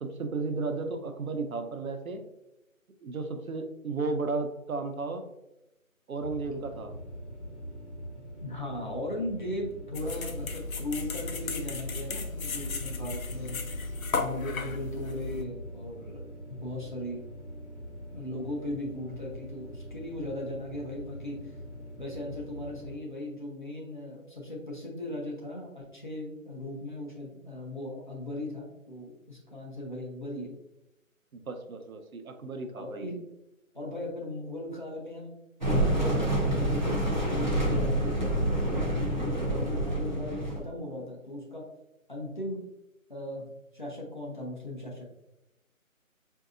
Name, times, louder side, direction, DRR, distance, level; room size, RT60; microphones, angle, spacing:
voice 1, 0.0-2.2 3.0-5.2 6.1-6.9 31.3-33.1, right 3 dB, 80° right, 6 dB, 0.7 m, -34 dB
sound 1, 6.2-23.0, equal, 55° left, 1.0 m, -43 dB
voice 2, 8.4-13.6 14.2-16.2 16.5-17.2 18.1-21.6 22.0-30.5 32.8-33.2 33.7-35.3 35.7-41.6 42.1-42.6 43.1-43.5 43.7-45.1, left 1 dB, 35° left, -4 dB, 0.7 m, -38 dB
sound 2, 9.9-15.4, left 4 dB, 75° left, 0.6 m, -35 dB
sound 3, 35.6-40.6, right 1 dB, 35° right, 0.6 m, -27 dB
4.5 x 2.7 x 2.4 m, 0.90 s
figure-of-eight pair, 170°, 42 cm